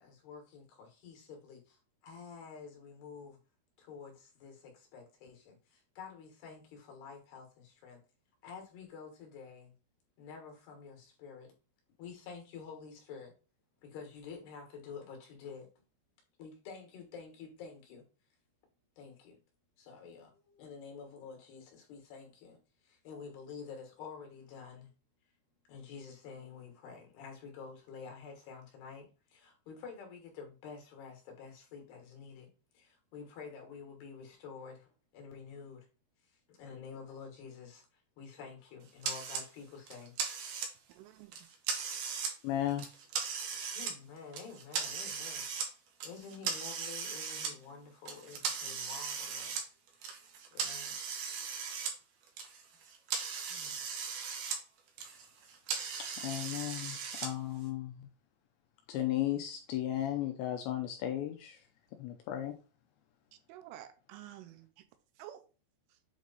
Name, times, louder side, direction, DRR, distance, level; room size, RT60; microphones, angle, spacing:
voice 1, 0.0-3.4 3.8-8.0 8.4-9.7 10.2-11.5 12.0-13.3 13.8-15.7 16.4-18.1 19.0-19.4 19.8-24.9 25.7-35.9 36.2-40.2 43.7-49.7 50.5-51.5 53.1-53.2 53.5-53.8, left 5 dB, 65° left, 3.0 m, -49 dB
sound 1, 39.0-39.4 39.9-40.9 41.3-42.3 42.7-43.9 44.3-45.7 46.0-47.5 48.1-51.9 52.2-54.6 54.9-57.3, right 6 dB, 70° right, 2.5 m, -38 dB
voice 2, 40.9-41.4 63.5-64.8 65.2-65.4, right 12 dB, 85° right, 3.3 m, -50 dB
voice 3, 42.4-42.9 56.2-58.1 58.9-61.7 62.0-62.5, left 12 dB, 80° left, 2.6 m, -35 dB
8.2 x 3.1 x 4.0 m
omnidirectional pair, 5.6 m